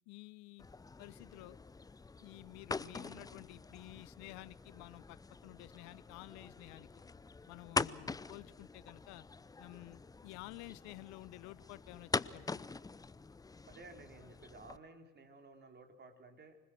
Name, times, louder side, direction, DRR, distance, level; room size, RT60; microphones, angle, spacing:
voice 1, 0.1-0.7 1.0-1.6 2.2-6.9 7.5-9.3 9.6-12.6, left 21 dB, 60° left, 20 dB, 0.7 m, -52 dB
sound 1, 0.6-14.8, left 4 dB, 10° left, 0.6 m, -44 dB
voice 2, 13.7-16.6, right 3 dB, 35° right, 5 dB, 4.1 m, -55 dB
26.0 x 20.0 x 6.3 m, 1.1 s
hypercardioid pair, 65°, 31 cm